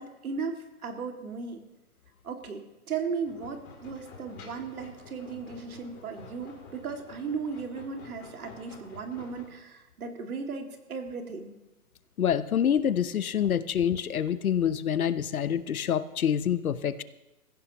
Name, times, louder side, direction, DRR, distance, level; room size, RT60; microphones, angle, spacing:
voice 1, 0.0-1.6 2.2-11.5, right 5 dB, 65° right, 4 dB, 2.4 m, -36 dB
sound 1, 3.3-9.6, left 4 dB, 20° left, 3.0 m, -49 dB
voice 2, 12.2-17.0, left 9 dB, 65° left, 15 dB, 0.9 m, -26 dB
23.0 x 15.0 x 3.0 m, 1.0 s
hypercardioid pair, 150°, 46 cm